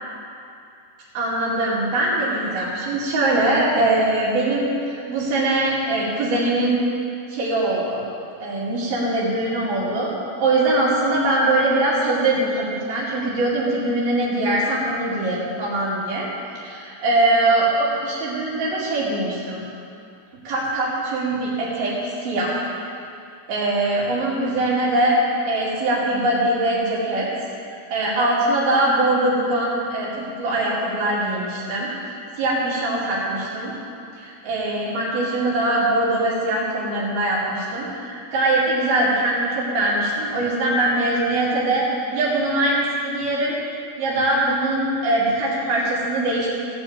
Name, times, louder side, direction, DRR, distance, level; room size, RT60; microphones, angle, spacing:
voice 1, 1.1-6.8 7.3-8.0 8.4-10.1 10.4-16.3 16.6-19.6 20.5-22.6 23.5-25.2 25.5-27.3 27.9-31.9 32.4-33.7 34.2-41.9 42.1-43.6 44.0-46.5, right 2 dB, 80° right, -7 dB, 4.3 m, -22 dB
16.0 x 5.4 x 8.7 m, 2.5 s
omnidirectional pair, 4.2 m